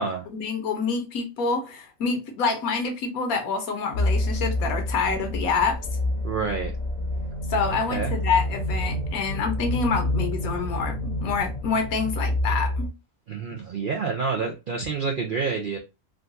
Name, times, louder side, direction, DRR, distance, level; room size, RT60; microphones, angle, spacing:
voice 1, 0.3-5.8 7.5-12.9, left 5 dB, 75° left, 1.3 m, -27 dB
sound 1, 3.9-12.9, left 1 dB, 40° left, 0.7 m, -28 dB
voice 2, 6.2-6.7 7.6-8.1 13.3-15.8, right 5 dB, 65° right, 0.5 m, -28 dB
3.7 x 2.3 x 2.6 m
omnidirectional pair, 1.5 m